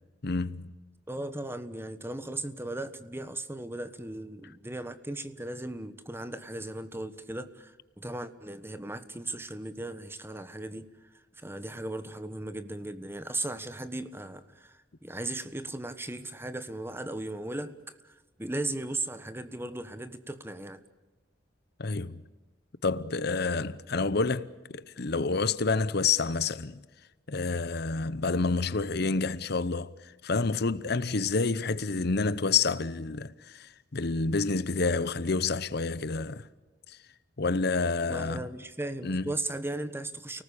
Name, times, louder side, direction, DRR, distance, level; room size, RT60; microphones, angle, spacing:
voice 1, 0.2-0.7 21.8-22.2 22.8-26.8 27.3-29.9 30.2-36.5 36.9-37.0 37.4-38.5 39.0-39.3, left 4 dB, 60° left, 0.8 m, -28 dB
voice 2, 1.1-20.8 38.1-40.4, right 2 dB, 15° right, 1.3 m, -37 dB
30.0 x 19.0 x 8.6 m
head